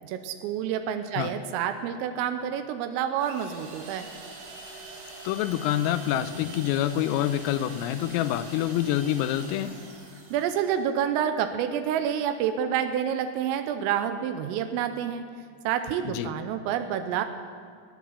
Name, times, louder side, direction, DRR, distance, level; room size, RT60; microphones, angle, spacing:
voice 1, 0.1-4.1 10.3-15.2 15.6-17.3, right 9 dB, 85° right, 8 dB, 3.4 m, -28 dB
sound 1, 3.2-10.8, right 3 dB, 70° right, 5.8 m, -44 dB
voice 2, 5.2-9.7 16.1-16.3, left 12 dB, 85° left, 12 dB, 3.3 m, -27 dB
19.0 x 10.5 x 7.2 m, 2.1 s
omnidirectional pair, 5.9 m